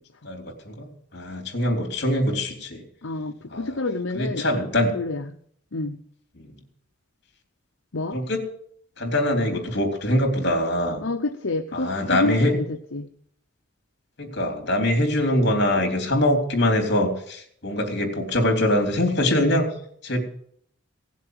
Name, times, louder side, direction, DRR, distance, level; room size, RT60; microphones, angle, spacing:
voice 1, 0.2-2.8 3.5-3.8 4.1-4.9 6.4-6.6 8.1-8.4 9.0-11.0 11.7-12.5 14.2-19.7 20.0-20.2, left 1 dB, 50° left, 4 dB, 3.4 m, -23 dB
voice 2, 3.0-4.5 4.9-5.3 5.7-6.0 7.9-8.2 11.0-13.1, left 2 dB, 70° left, 5 dB, 0.8 m, -28 dB
17.5 x 7.4 x 7.9 m, 0.65 s
head